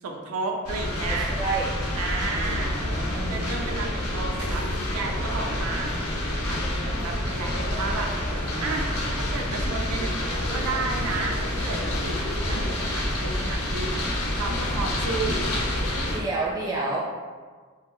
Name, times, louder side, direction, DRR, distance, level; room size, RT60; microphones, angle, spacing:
voice 1, 0.0-1.3 2.0-2.8 3.1-4.7 4.9-6.0 6.4-8.1 8.6-14.0 14.3-15.4, right 3 dB, 85° right, 2 dB, 0.4 m, -32 dB
sound 1, 0.6-16.2, left 1 dB, 85° left, 0.6 m, -28 dB
voice 2, 1.1-1.7 2.3-3.5 16.1-17.0, right 3 dB, 15° right, -5 dB, 0.4 m, -30 dB
2.5 x 2.3 x 2.9 m, 1.5 s
head